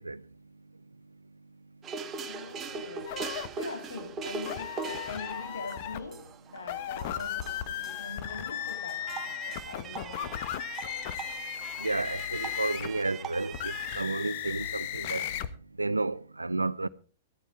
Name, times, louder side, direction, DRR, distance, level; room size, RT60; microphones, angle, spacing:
sound 1, 1.8-14.0, right 5 dB, 25° right, 1.3 m, -41 dB
voice 1, 2.2-10.6, left 3 dB, 75° left, 2.3 m, -43 dB
sound 2, 3.1-3.5 4.5-6.0 6.6-13.0 13.5-15.5, left 11 dB, 50° left, 1.2 m, -36 dB
voice 2, 11.8-15.2 15.8-16.9, right 3 dB, 85° right, 0.7 m, -31 dB
14.0 x 13.5 x 4.6 m
figure-of-eight pair, 105°, 0 cm